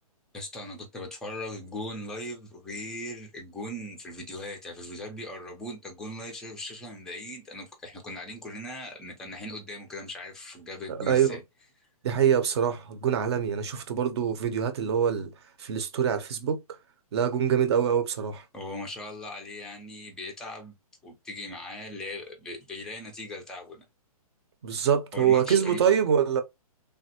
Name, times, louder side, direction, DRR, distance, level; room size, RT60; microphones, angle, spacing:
voice 1, 0.3-11.4 18.5-20.8 21.0-23.9 25.1-25.8, left 1 dB, 5° left, 0.4 m, -39 dB
voice 2, 10.9-11.4 12.0-15.3 15.6-16.6 17.1-18.4 24.6-26.4, right 8 dB, 45° right, 0.6 m, -25 dB
3.3 x 2.0 x 2.8 m
hypercardioid pair, 155°, 19 cm